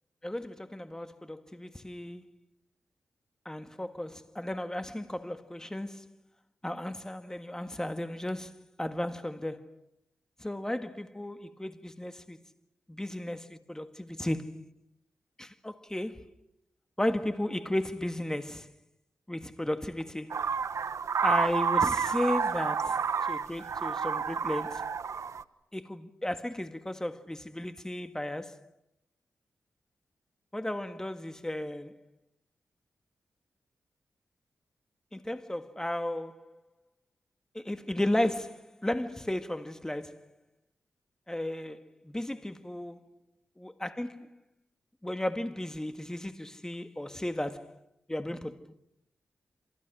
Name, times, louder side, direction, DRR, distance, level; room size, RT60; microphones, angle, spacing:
voice 1, 0.2-2.3 3.5-6.1 6.6-9.8 10.4-12.4 12.9-13.4 13.7-14.7 15.4-16.3 17.0-18.7 19.3-20.4 21.2-24.9 25.7-28.7 30.5-32.0 35.1-36.6 37.5-40.3 41.3-43.1 43.6-44.3 45.0-47.8 48.1-48.8, left 1 dB, 10° left, 1.9 m, -34 dB
sound 1, 20.3-25.4, right 6 dB, 70° right, 1.1 m, -29 dB
29.0 x 27.0 x 6.3 m
cardioid pair, 75°, 6 cm